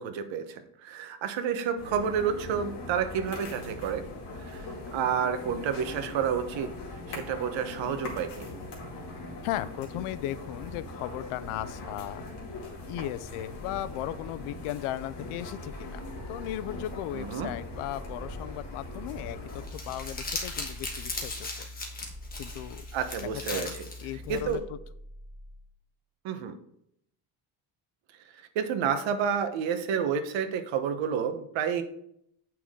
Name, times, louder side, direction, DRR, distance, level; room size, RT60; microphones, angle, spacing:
voice 1, 0.0-4.0 4.4-4.7 4.9-6.7 7.1-8.5 17.1-17.5 22.9-23.7 24.3-24.6 26.2-26.5 28.5-31.8, right 7 dB, 65° right, 8 dB, 1.1 m, -30 dB
sound 1, 1.8-19.7, left 2 dB, 55° left, 2.3 m, -41 dB
voice 2, 9.4-12.2 12.9-16.0 16.3-21.7 22.4-22.9 23.2-23.8 24.0-24.8, left 13 dB, 85° left, 16 dB, 0.6 m, -36 dB
sound 2, 13.4-14.8 15.6-17.2 17.7-19.1 19.9-21.5 22.0-23.4 24.2-25.8, equal, 20° right, 2.7 m, -47 dB
Crumpling crinkling, 19.5-24.6, left 2 dB, 20° left, 1.3 m, -38 dB
8.3 x 5.9 x 3.7 m, 0.72 s
cardioid pair, 165°, 49 cm